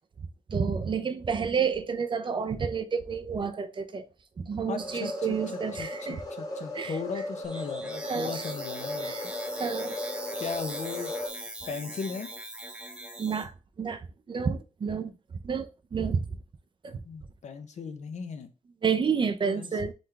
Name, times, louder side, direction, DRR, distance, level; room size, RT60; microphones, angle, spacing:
voice 1, 0.5-4.1 4.4-6.2 6.7-7.0 8.0-8.4 9.0-9.2 9.6-10.0 13.2-15.1 15.4-16.3 16.8-17.0 18.8-19.9, right 6 dB, 40° right, 0.5 m, -30 dB
voice 2, 4.7-5.1 5.8-9.1 10.3-11.1 11.7-12.3 17.0-18.5 19.5-19.7, left 5 dB, 65° left, 0.7 m, -37 dB
sound 1, 4.8-11.3, left 1 dB, 30° left, 1.1 m, -36 dB
sound 2, 7.4-13.4, right 1 dB, 5° right, 0.8 m, -41 dB
3.9 x 3.3 x 3.3 m
cardioid pair, 95°, 13 cm